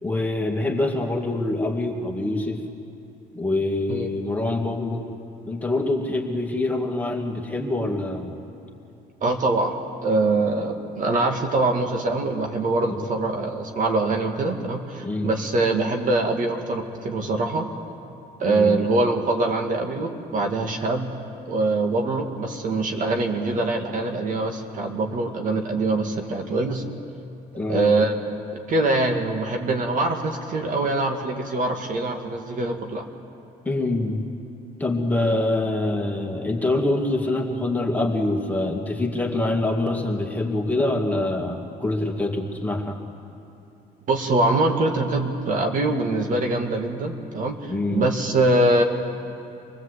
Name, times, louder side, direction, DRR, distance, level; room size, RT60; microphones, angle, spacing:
voice 1, 0.0-2.6 3.3-5.0 5.5-8.4 12.9-13.0 15.0-15.3 18.5-18.8 27.6-28.0 33.6-34.2 34.8-43.0 47.7-48.1, left 2 dB, 10° left, 0 dB, 2.4 m, -25 dB
voice 2, 9.2-9.8 10.0-17.7 18.4-21.1 21.5-26.8 27.7-28.1 28.7-33.1 44.1-48.8, right 2 dB, 50° right, 3 dB, 2.1 m, -23 dB
26.0 x 19.5 x 8.3 m, 2.8 s
cardioid pair, 110°, 17 cm